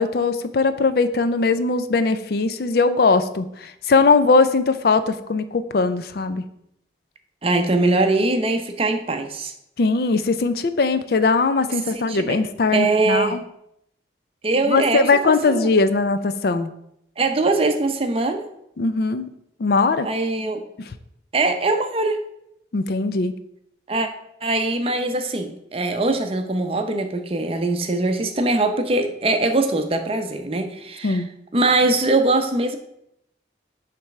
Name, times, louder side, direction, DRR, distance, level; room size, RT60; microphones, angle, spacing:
voice 1, 0.0-6.4 9.8-13.4 14.7-16.7 18.8-19.3 19.6-20.1 20.8-20.9 22.7-23.3 31.0-31.3, left 4 dB, 55° left, 12 dB, 0.4 m, -20 dB
voice 2, 7.4-9.5 11.9-12.4 12.7-13.4 14.4-15.7 17.2-18.4 20.0-20.6 21.3-22.2 23.9-24.1 24.4-31.2 31.5-32.8, right 2 dB, 30° right, 7 dB, 0.6 m, -22 dB
7.2 x 3.4 x 5.8 m, 0.78 s
head